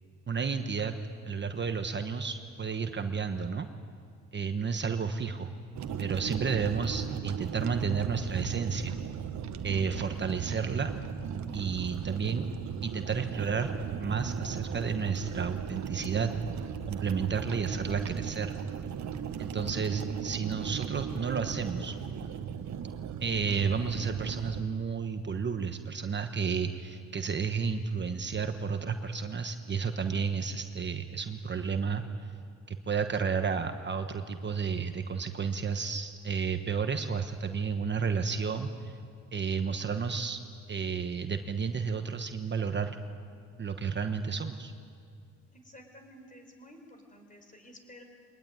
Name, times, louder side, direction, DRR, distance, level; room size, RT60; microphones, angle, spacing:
voice 1, 0.3-0.9 1.2-3.7 4.3-5.6 6.0-9.0 9.6-10.9 11.5-12.5 12.8-13.7 14.0-16.3 16.9-18.6 19.4-21.9 23.2-32.0 32.7-38.9 39.3-40.4 40.7-43.0 43.6-44.7, right 5 dB, 35° right, 7 dB, 1.2 m, -31 dB
sound 1, 5.7-24.6, right 8 dB, 65° right, 1.3 m, -37 dB
voice 2, 45.5-48.0, left 1 dB, 25° left, 5 dB, 4.5 m, -52 dB
22.5 x 19.5 x 9.5 m, 2.3 s
cardioid pair, 90°, 30 cm